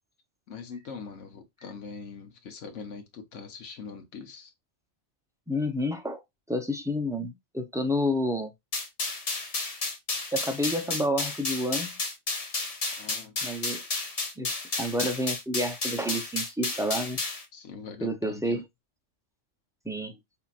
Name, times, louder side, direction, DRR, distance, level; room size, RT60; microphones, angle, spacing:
voice 1, 0.5-4.5 12.9-13.4 17.5-18.6, left 5 dB, 80° left, 1.3 m, -42 dB
voice 2, 5.5-6.2 6.5-8.5 10.3-12.0 13.4-13.8 14.4-14.5 14.8-17.2 18.0-18.6 19.8-20.1, equal, 5° right, 0.4 m, -29 dB
sound 1, 8.7-17.4, left 3 dB, 35° left, 0.9 m, -32 dB
5.6 x 2.8 x 2.4 m
omnidirectional pair, 1.2 m